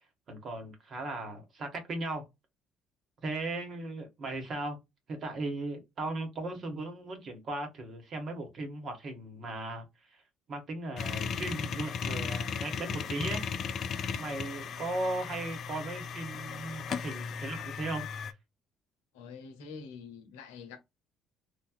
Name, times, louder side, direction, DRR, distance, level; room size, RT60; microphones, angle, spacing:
voice 1, 0.3-2.2 3.2-4.8 5.1-9.9 10.1-10.2 10.5-13.4 14.1-18.1, right 2 dB, 55° right, 1.5 m, -37 dB
sound 1, 11.0-18.3, left 6 dB, 60° left, 0.5 m, -36 dB
voice 2, 19.1-20.8, left 5 dB, 85° left, 0.8 m, -46 dB
3.3 x 2.6 x 2.3 m
hypercardioid pair, 55°, 0 cm